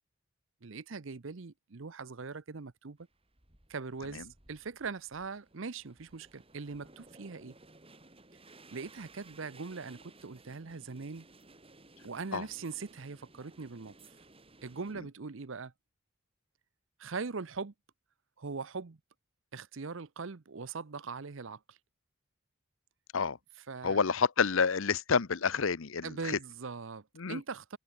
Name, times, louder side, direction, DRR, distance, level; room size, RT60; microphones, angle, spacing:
voice 1, 0.6-3.0 3.7-7.5 8.7-11.3 12.0-13.9 14.6-15.7 17.0-17.7 18.4-19.0 19.5-21.8 23.7-24.0 26.0-27.8, right 4 dB, 65° right, 0.7 m, -41 dB
sound 1, 3.0-14.9, right 2 dB, 25° right, 4.1 m, -58 dB
voice 2, 23.8-26.4 27.2-27.4, left 5 dB, 70° left, 0.8 m, -29 dB
head